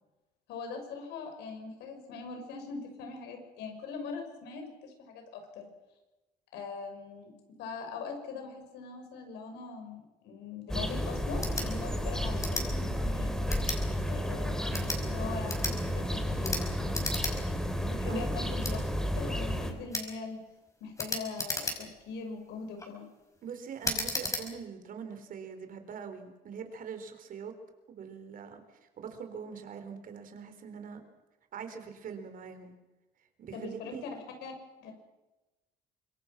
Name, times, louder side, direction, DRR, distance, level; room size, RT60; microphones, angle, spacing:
voice 1, 0.5-5.7 6.5-7.3 7.6-13.3 14.1-16.6 17.8-18.8 19.2-20.4 20.8-23.1 33.5-34.5 34.8-34.9, left 4 dB, 85° left, 5 dB, 6.3 m, -41 dB
sound 1, 10.7-19.7, equal, 5° left, 3.5 m, -32 dB
sound 2, 11.4-11.7 12.4-12.7 13.5-13.8 14.6-15.0 15.5-15.8 16.4-16.6 16.9-17.3 17.7-17.8 18.6-18.8 19.9-20.1 21.0-22.0 22.6-22.9 23.8-24.4, left 2 dB, 20° left, 5.5 m, -34 dB
voice 2, 23.4-27.5 27.9-31.0 31.5-32.7 33.4-34.0, right 6 dB, 55° right, 7 dB, 4.0 m, -43 dB
25.5 x 22.5 x 6.0 m, 1.1 s
cardioid pair, 110°, 17 cm